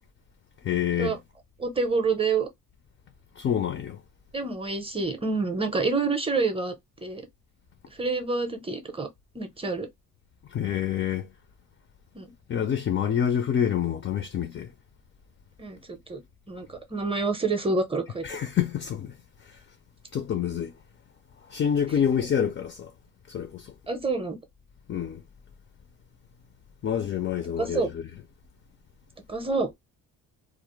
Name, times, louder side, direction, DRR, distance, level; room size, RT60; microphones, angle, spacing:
voice 1, 0.6-1.2 3.4-4.0 10.5-11.3 12.5-14.7 18.2-19.1 20.1-20.7 21.5-22.9 23.3-23.7 24.9-25.2 26.8-28.0, left 9 dB, 35° left, 0.4 m, -27 dB
voice 2, 1.6-2.5 4.3-6.7 7.0-7.2 8.0-9.1 9.3-9.9 12.1-12.3 15.6-16.2 16.5-18.2 23.9-24.4 27.6-27.9 29.3-29.7, right 4 dB, 15° right, 0.6 m, -27 dB
2.4 x 2.0 x 3.0 m
cardioid pair, 90°, 36 cm